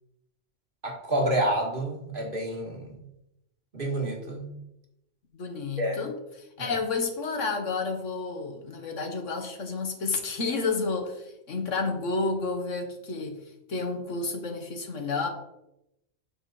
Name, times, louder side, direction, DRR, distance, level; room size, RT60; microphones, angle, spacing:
voice 1, 0.8-2.9 3.7-4.5 5.8-6.1 6.6-6.8, right 1 dB, 45° right, 0 dB, 1.8 m, -29 dB
voice 2, 5.3-13.4 13.7-15.3, left 3 dB, 80° left, 4 dB, 1.6 m, -30 dB
8.7 x 6.4 x 4.2 m, 0.87 s
omnidirectional pair, 1.3 m